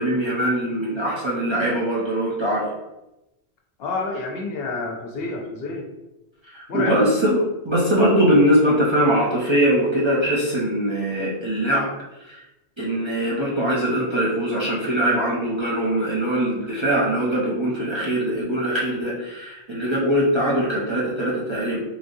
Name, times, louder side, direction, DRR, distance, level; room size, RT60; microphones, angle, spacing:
voice 1, 0.0-2.6 6.5-11.9 12.8-21.8, right 1 dB, 30° right, -7 dB, 0.6 m, -21 dB
voice 2, 3.8-5.9 6.7-7.0, left 3 dB, 70° left, 1 dB, 0.7 m, -28 dB
3.3 x 2.6 x 2.6 m, 0.95 s
omnidirectional pair, 1.1 m